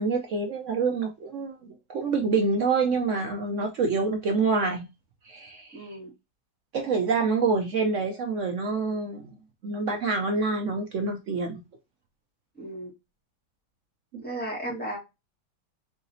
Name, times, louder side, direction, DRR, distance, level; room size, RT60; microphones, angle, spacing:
voice 1, 0.0-4.9 5.2-5.9 6.7-9.3 9.6-11.6 14.1-14.2, right 4 dB, 70° right, 0.7 m, -27 dB
voice 2, 5.7-6.1 12.5-12.9 14.2-15.0, right 1 dB, 5° left, 1.3 m, -34 dB
4.8 x 2.8 x 2.6 m
omnidirectional pair, 1.8 m